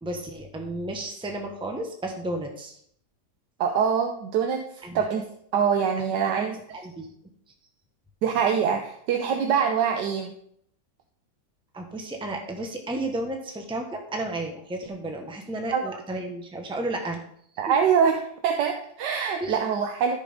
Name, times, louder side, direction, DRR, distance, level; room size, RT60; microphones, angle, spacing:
voice 1, 0.0-2.8 4.8-5.0 6.7-7.1 11.7-17.2 17.7-17.8 19.4-19.6, right 1 dB, 5° right, 2 dB, 1.0 m, -32 dB
voice 2, 3.6-4.7 4.9-6.6 8.2-10.3 15.7-15.8 17.6-20.2, right 7 dB, 80° right, 4 dB, 1.4 m, -24 dB
14.0 x 6.1 x 3.6 m, 0.68 s
omnidirectional pair, 1.8 m